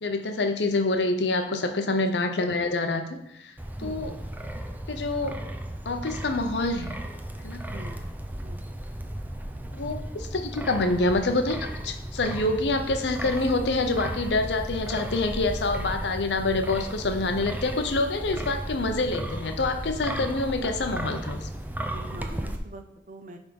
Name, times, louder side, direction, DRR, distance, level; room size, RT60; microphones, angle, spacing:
voice 1, 0.0-3.0 3.3-3.5 3.8-4.1 4.9-5.4 5.9-7.0 7.4-7.6 9.7-11.6 11.8-21.5, left 2 dB, 80° left, 6 dB, 0.7 m, -26 dB
Wind, 3.6-22.6, right 1 dB, 10° right, 0.5 m, -35 dB
voice 2, 3.8-4.2 7.7-8.0 8.4-8.6 21.9-23.4, right 2 dB, 45° right, 7 dB, 0.7 m, -43 dB
10.0 x 3.6 x 5.1 m, 0.85 s
head